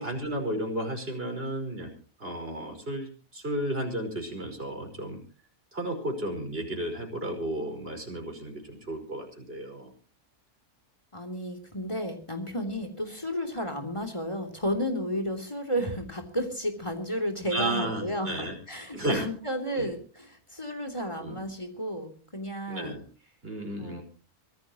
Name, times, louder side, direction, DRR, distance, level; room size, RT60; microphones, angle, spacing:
voice 1, 0.0-1.9 2.2-5.2 5.7-9.9 17.5-18.5 18.9-19.3 19.8-19.9 21.2-21.4 22.7-23.0 23.4-24.0, right 1 dB, 40° right, 3 dB, 5.6 m, -33 dB
voice 2, 11.1-23.0 23.8-24.0, equal, 20° left, 6 dB, 3.3 m, -32 dB
24.5 x 16.0 x 3.0 m, 0.39 s
omnidirectional pair, 1.6 m